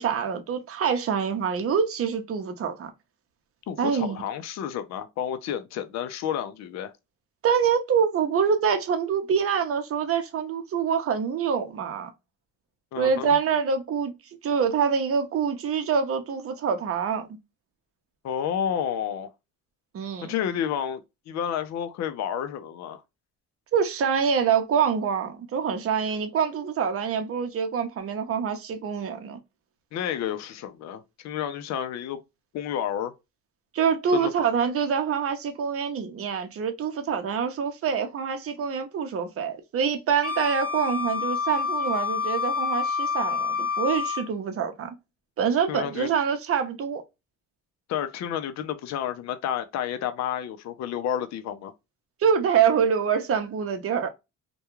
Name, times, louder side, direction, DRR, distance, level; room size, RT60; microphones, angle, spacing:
voice 1, 0.0-2.9 3.8-4.2 7.4-12.1 13.0-14.1 14.4-17.3 19.9-20.3 23.7-29.4 33.7-44.9 45.4-47.0 52.2-54.1, right 7 dB, 50° right, 0.7 m, -25 dB
voice 2, 3.7-6.9 12.9-13.3 18.2-19.3 20.2-23.0 29.9-32.2 32.5-33.1 34.1-34.3 45.7-46.1 47.9-51.7, left 9 dB, 60° left, 0.5 m, -30 dB
Wind instrument woodwind instrument, 40.2-44.3, left 5 dB, 30° left, 1.0 m, -28 dB
2.3 x 2.2 x 2.9 m
cardioid pair, 90°, 30 cm